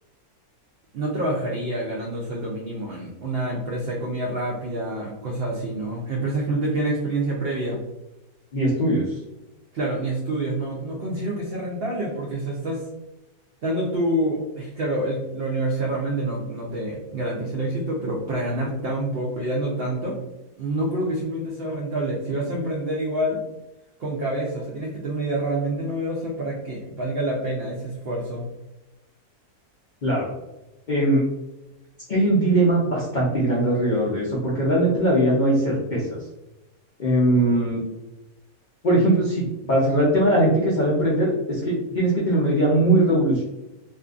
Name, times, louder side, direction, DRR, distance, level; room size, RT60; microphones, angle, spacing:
voice 1, 0.9-7.8 9.7-12.8 13.6-20.2 20.6-23.4 24.0-28.5 37.3-37.5, right 1 dB, 85° right, -2 dB, 0.5 m, -27 dB
voice 2, 8.5-9.2 30.0-30.3 30.9-31.2 32.1-36.2 37.0-37.8 38.8-43.4, right 1 dB, 80° left, -6 dB, 0.4 m, -20 dB
2.6 x 2.5 x 2.3 m, 0.99 s
omnidirectional pair, 1.6 m